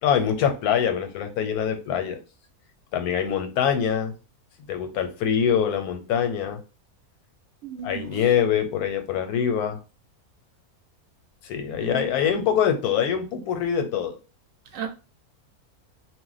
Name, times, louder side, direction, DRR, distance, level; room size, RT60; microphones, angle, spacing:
voice 1, 0.0-2.2 2.9-4.1 4.7-6.6 7.8-9.8 11.4-14.2, left 8 dB, 90° left, 1.1 m, -24 dB
voice 2, 7.6-8.0 11.8-12.2 14.7-14.9, right 7 dB, 70° right, 0.9 m, -34 dB
2.5 x 2.0 x 3.8 m
omnidirectional pair, 1.5 m